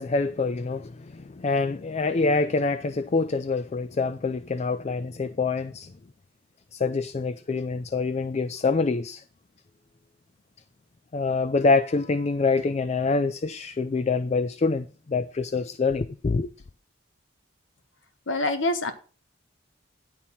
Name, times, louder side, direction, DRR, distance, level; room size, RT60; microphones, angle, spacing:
voice 1, 0.0-5.9 6.7-9.2 11.1-16.5, left 4 dB, 35° left, 0.4 m, -26 dB
voice 2, 18.3-18.9, left 2 dB, 75° left, 1.1 m, -25 dB
10.5 x 4.1 x 7.3 m
head